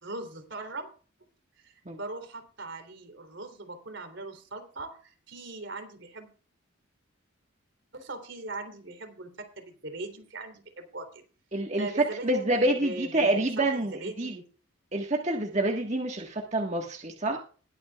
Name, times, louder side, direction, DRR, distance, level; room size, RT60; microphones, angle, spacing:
voice 1, 0.0-0.9 1.6-6.3 7.9-11.2 11.8-14.4, right 2 dB, 60° right, 4 dB, 3.3 m, -40 dB
voice 2, 11.5-11.9 12.2-14.3 14.9-17.4, right 1 dB, 35° right, 1 dB, 1.5 m, -27 dB
21.0 x 8.8 x 2.4 m, 0.38 s
head